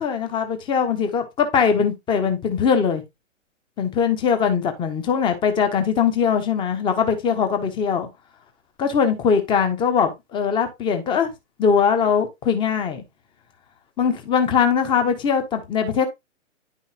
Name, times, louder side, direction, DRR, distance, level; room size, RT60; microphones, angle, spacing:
voice 1, 0.0-3.0 3.8-8.1 8.8-11.3 11.6-13.0 14.0-16.1, left 6 dB, 10° left, 1.1 m, -21 dB
10.5 x 5.7 x 2.8 m
figure-of-eight pair, 125°, 38 cm